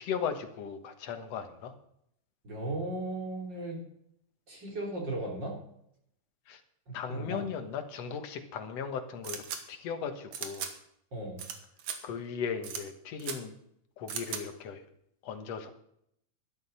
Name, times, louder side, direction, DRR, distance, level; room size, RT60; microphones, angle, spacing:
voice 1, 0.0-1.7 6.5-6.6 6.9-10.7 12.0-13.5 14.0-14.8 15.2-15.7, left 6 dB, 60° left, 6 dB, 2.3 m, -37 dB
voice 2, 2.4-3.8 4.5-5.6 6.9-7.4 11.1-11.4, right 2 dB, 35° right, -1 dB, 3.6 m, -36 dB
sound 1, 9.2-9.6 10.3-10.7 11.4-11.5 11.8-12.0 12.6-12.8 13.2-13.4 14.1-14.4, right 8 dB, 75° right, 2.7 m, -37 dB
12.0 x 11.5 x 5.5 m, 0.73 s
omnidirectional pair, 3.4 m